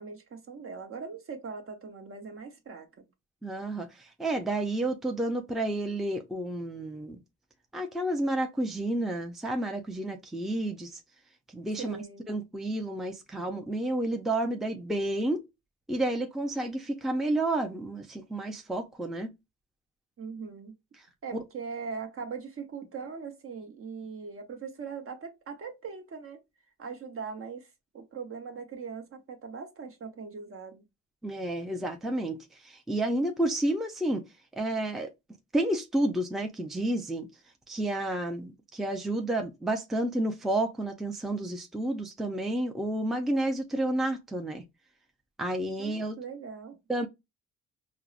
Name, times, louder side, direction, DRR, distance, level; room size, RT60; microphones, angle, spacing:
voice 1, 0.0-3.1 11.8-12.3 20.2-20.7 21.2-26.4 26.8-30.9 45.8-46.8, right 5 dB, 45° right, 0.9 m, -40 dB
voice 2, 3.4-3.9 4.2-7.2 7.7-11.0 11.5-12.0 12.3-15.4 15.9-19.3 21.3-21.4 31.2-32.4 32.6-34.2 34.6-35.1 35.5-37.3 37.7-44.6 45.4-46.2 46.9-47.1, right 1 dB, ahead, 0.5 m, -30 dB
4.5 x 2.1 x 2.4 m
cardioid pair, 90°, 30 cm